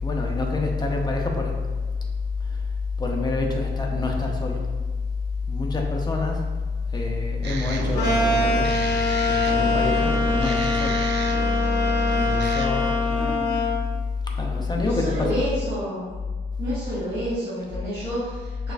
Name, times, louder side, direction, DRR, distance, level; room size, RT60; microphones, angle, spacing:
voice 1, 0.0-1.5 3.0-4.6 5.5-6.4 6.9-8.7 9.2-11.0 12.1-13.3 14.3-15.4, left 3 dB, 20° left, 1 dB, 0.6 m, -25 dB
sound 1, 7.4-12.7, right 5 dB, 65° right, 0.4 m, -32 dB
sound 2, 8.0-13.8, left 3 dB, 60° left, 0.6 m, -24 dB
voice 2, 13.0-13.6 14.7-16.1 16.6-18.7, equal, 30° right, -14 dB, 1.5 m, -30 dB
6.2 x 2.5 x 2.3 m, 1.4 s
cardioid pair, 110°, 19 cm